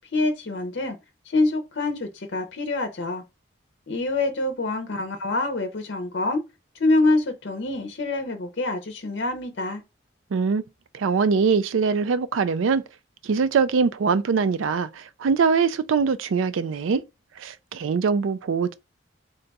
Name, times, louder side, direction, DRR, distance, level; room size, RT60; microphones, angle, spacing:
voice 1, 0.1-1.0 1.3-3.2 3.9-6.4 6.8-9.8, left 2 dB, 60° left, 0.6 m, -25 dB
voice 2, 10.3-10.6 10.9-12.8 13.2-17.0 17.4-18.7, right 5 dB, 80° right, 0.4 m, -22 dB
3.7 x 2.3 x 3.9 m
head